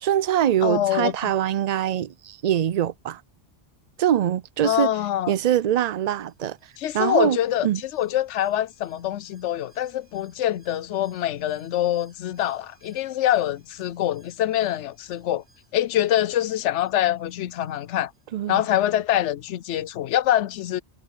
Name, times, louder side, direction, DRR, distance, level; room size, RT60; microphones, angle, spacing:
voice 1, 0.0-3.2 4.0-4.9 5.3-6.6 6.9-7.4 7.6-7.8 18.3-18.6, right 11 dB, 65° right, 0.4 m, -23 dB
voice 2, 0.6-1.3 4.6-5.3 6.8-15.4 15.7-18.1 18.5-20.8, left 12 dB, 85° left, 0.9 m, -25 dB
Alarm, 5.7-18.8 19.1-19.2, right 2 dB, 35° right, 7.5 m, -63 dB
omnidirectional pair, 1.2 m